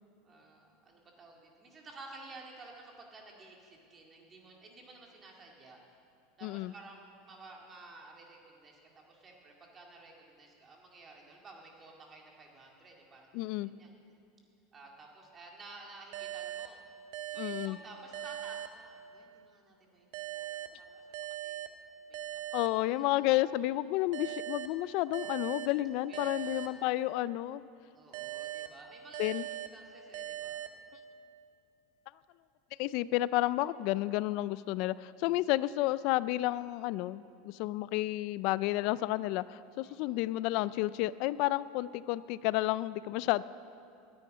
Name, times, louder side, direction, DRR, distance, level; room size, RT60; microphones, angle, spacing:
voice 1, 0.2-5.8 6.4-13.9 14.7-16.8 17.3-21.1 21.4-21.6 22.1-23.3 26.1-26.9 27.9-30.6 39.8-40.2, right 3 dB, 20° right, 0 dB, 2.1 m, -53 dB
voice 2, 6.4-6.7 13.3-13.7 17.4-17.8 22.5-27.6 29.2-29.4 32.8-43.4, left 16 dB, 50° left, 18 dB, 0.3 m, -31 dB
sound 1, 16.1-19.5 20.1-23.4 24.1-27.5 28.1-31.4, right 12 dB, 60° right, 0.7 m, -42 dB
10.5 x 9.2 x 9.8 m, 2.5 s
supercardioid pair, 160°, 0 cm